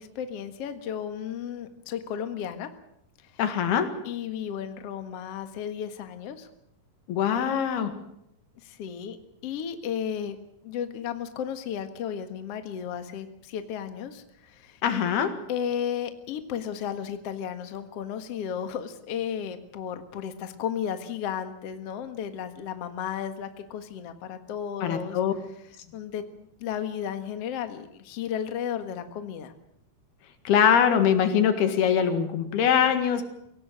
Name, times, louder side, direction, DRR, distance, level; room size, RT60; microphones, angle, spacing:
voice 1, 0.0-2.7 4.0-6.5 8.6-9.2 9.4-10.4 10.6-14.8 15.5-25.2 25.9-29.5, left 8 dB, 50° left, 8 dB, 2.2 m, -34 dB
voice 2, 3.4-4.0 7.1-8.0 14.8-15.4 24.8-25.3 30.5-33.3, left 8 dB, 85° left, 8 dB, 3.9 m, -23 dB
24.5 x 17.5 x 7.6 m, 0.77 s
omnidirectional pair, 4.4 m